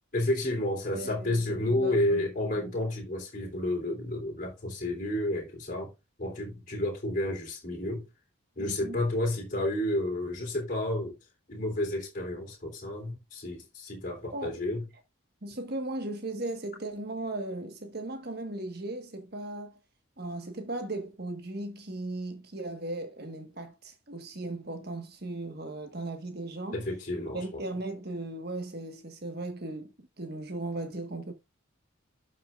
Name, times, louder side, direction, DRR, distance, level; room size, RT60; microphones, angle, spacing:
voice 1, 0.1-5.9 6.2-8.1 8.6-11.2 11.5-14.8 26.7-27.6, left 1 dB, 40° left, 3.4 m, -31 dB
voice 2, 0.9-1.4 1.6-2.3 2.5-2.7 8.6-9.0 14.3-14.6 15.4-19.8 20.2-26.8 27.3-31.3, right 2 dB, 50° right, 1.5 m, -37 dB
12.0 x 5.7 x 2.5 m
head